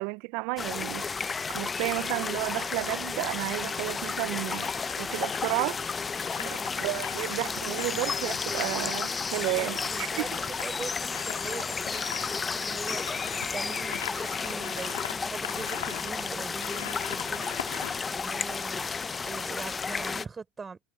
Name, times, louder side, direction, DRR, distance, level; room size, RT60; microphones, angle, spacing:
voice 1, 0.0-5.8 6.5-10.1, right 27 dB, 65° right, 0.6 m, -32 dB
sound 1, 0.6-20.3, left 5 dB, 20° left, 0.7 m, -32 dB
sound 2, 1.8-2.6 3.8-19.3 19.7-19.8, left 14 dB, 85° left, 1.7 m, -43 dB
voice 2, 6.3-6.7 9.5-13.1 13.5-17.5 18.1-18.9 19.3-20.8, right 5 dB, 20° right, 3.9 m, -42 dB
hypercardioid pair, 95°, 0 cm